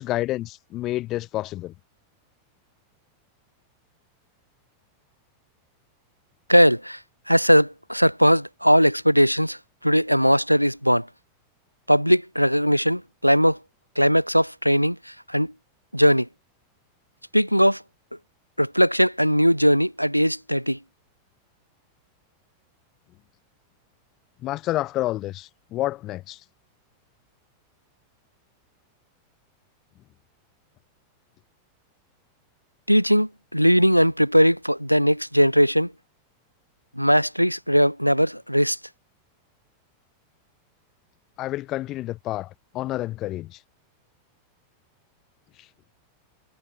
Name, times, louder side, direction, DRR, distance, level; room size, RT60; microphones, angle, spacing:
voice 1, 0.0-1.7 24.4-26.4 41.4-43.6, left 16 dB, 35° left, 0.6 m, -29 dB
voice 2, 6.5-7.0 7.3-9.6 9.8-11.1 11.9-13.6 14.0-15.0 15.3-15.5 15.9-16.3 17.3-17.8 18.6-20.8 32.9-35.9 37.0-38.8, equal, 90° right, 0.3 m, -19 dB
figure-of-eight pair, 90°, 0 cm